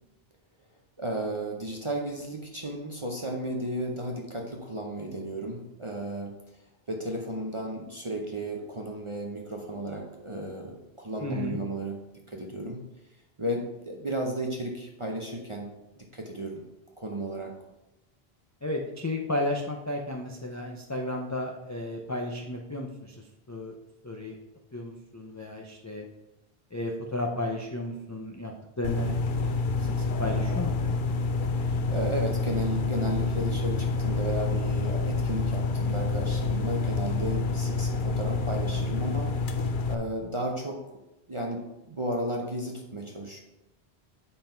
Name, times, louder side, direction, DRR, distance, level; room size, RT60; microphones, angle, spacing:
voice 1, 1.0-6.3 6.9-12.0 12.3-12.8 13.4-15.7 16.0-16.6 17.0-17.6 31.4-39.6 39.9-40.8 41.3-43.4, right 1 dB, 30° right, 0 dB, 0.8 m, -34 dB
voice 2, 11.2-11.6 18.6-23.2 23.5-23.7 24.0-24.4 24.7-26.0 26.7-29.5 29.8-30.9, left 1 dB, 20° left, 0 dB, 0.5 m, -33 dB
sound 1, 28.8-40.0, left 3 dB, 55° left, 0.7 m, -28 dB
7.6 x 5.6 x 4.4 m, 0.95 s
omnidirectional pair, 1.1 m